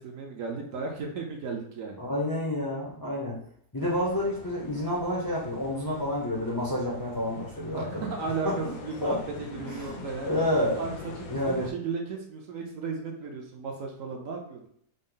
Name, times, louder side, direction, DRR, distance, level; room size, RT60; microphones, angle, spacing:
voice 1, 0.0-2.0 7.7-10.4 10.8-14.7, right 4 dB, 65° right, 1 dB, 0.9 m, -35 dB
voice 2, 2.0-3.4 3.7-8.1 8.4-8.6 9.0-9.2 9.7-10.8 11.3-11.7, left 1 dB, 30° left, -4 dB, 0.4 m, -29 dB
sound 1, 3.8-11.7, left 5 dB, 65° left, 1.0 m, -44 dB
5.2 x 2.0 x 3.8 m, 0.66 s
omnidirectional pair, 1.7 m